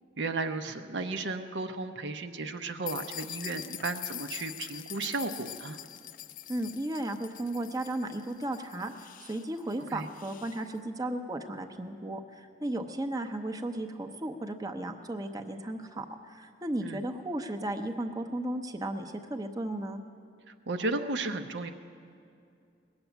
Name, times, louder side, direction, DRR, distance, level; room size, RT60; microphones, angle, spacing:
voice 1, 0.2-5.8 9.9-10.1 16.8-17.0 20.7-21.7, right 3 dB, 75° right, 7 dB, 0.7 m, -34 dB
sound 1, 2.9-10.6, left 12 dB, 50° left, 0.3 m, -44 dB
voice 2, 6.5-20.0, right 1 dB, 20° right, 4 dB, 0.7 m, -35 dB
19.5 x 7.1 x 9.1 m, 2.5 s
head